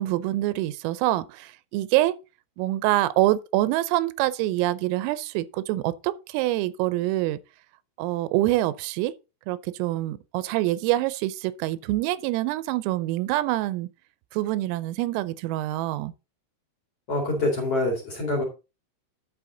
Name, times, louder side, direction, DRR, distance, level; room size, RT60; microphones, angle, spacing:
voice 1, 0.0-2.2 2.6-7.4 8.0-9.1 9.5-13.9 14.3-16.1, right 16 dB, 90° right, 3.3 m, -25 dB
voice 2, 17.1-18.4, left 2 dB, 40° left, 2.7 m, -25 dB
11.0 x 6.4 x 3.8 m
omnidirectional pair, 5.8 m